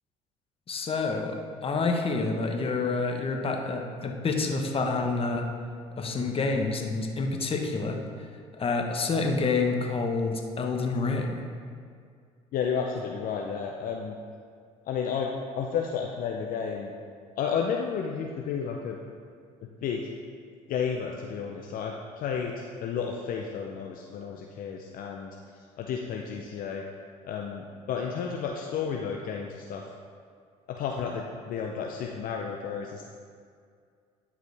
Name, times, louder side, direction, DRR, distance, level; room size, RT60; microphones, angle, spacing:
voice 1, 0.7-5.4 6.0-8.0 8.6-11.4, left 3 dB, 35° left, 3 dB, 1.1 m, -28 dB
voice 2, 12.5-14.1 14.8-16.9 17.4-19.0 19.6-20.1 20.7-25.3 25.8-26.8 27.2-29.9 30.7-33.1, left 6 dB, 60° left, 1 dB, 0.6 m, -32 dB
12.0 x 4.9 x 3.4 m, 2.2 s
supercardioid pair, 75°, 17 cm